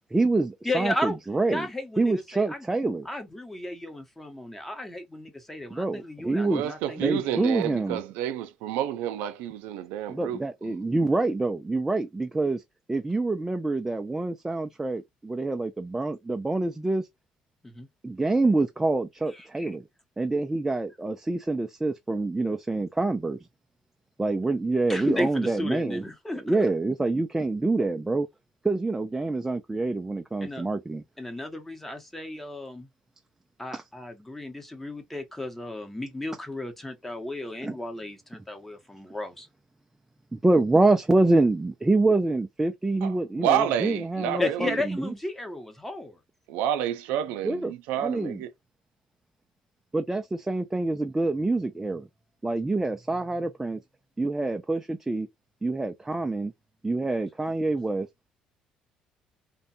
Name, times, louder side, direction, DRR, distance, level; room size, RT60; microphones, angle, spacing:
voice 1, 0.1-1.7 2.0-3.1 5.7-6.6 7.0-8.0 10.1-12.6 12.9-17.1 18.0-19.8 20.2-23.4 24.2-26.0 26.4-28.3 28.6-31.0 33.7-33.8 37.6-37.8 40.3-45.1 47.4-47.7 48.0-48.4 49.9-52.1 52.4-53.8 54.2-55.3 55.6-56.5 56.8-58.1, right 2 dB, 10° right, 0.3 m, -26 dB
voice 2, 0.6-1.1 1.5-2.7 3.1-7.7 17.6-17.9 19.6-19.7 24.9-26.6 30.4-30.6 31.2-32.9 33.6-39.5 44.4-46.2, left 1 dB, 10° left, 0.8 m, -34 dB
voice 3, 6.4-10.8 43.0-43.1 43.4-44.8 46.5-48.5, right 10 dB, 90° right, 0.4 m, -29 dB
2.6 x 2.2 x 2.6 m
cardioid pair, 100°, 3 cm